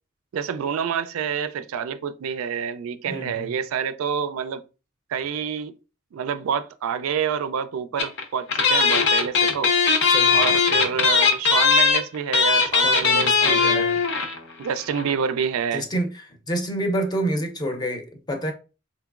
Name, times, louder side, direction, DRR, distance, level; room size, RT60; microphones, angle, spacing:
voice 1, 0.3-4.6 5.1-5.7 6.1-9.7 10.3-13.9 14.6-15.9, right 7 dB, 85° right, 0.3 m, -28 dB
voice 2, 3.1-3.5 10.0-11.1 12.8-14.0 15.7-18.5, right 1 dB, 20° left, 0.6 m, -29 dB
sound 1, 8.0-8.2 8.5-14.4 14.7-14.8 14.9-15.1, left 5 dB, 60° left, 0.7 m, -19 dB
3.8 x 2.9 x 2.4 m
head